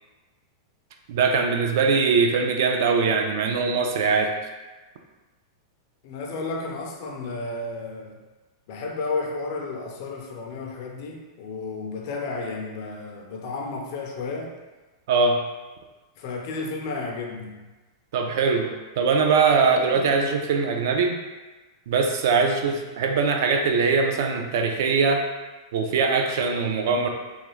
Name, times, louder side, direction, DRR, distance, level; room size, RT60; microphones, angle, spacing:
voice 1, 1.1-4.3 15.1-15.4 18.1-21.2 21.9-25.2 25.7-27.1, right 4 dB, 55° right, 3 dB, 0.3 m, -22 dB
voice 2, 6.0-8.2 8.7-14.6 16.2-17.7 22.4-22.8, left 3 dB, 40° left, 1 dB, 0.4 m, -32 dB
2.4 x 2.3 x 3.0 m, 1.2 s
supercardioid pair, 175°, 2 cm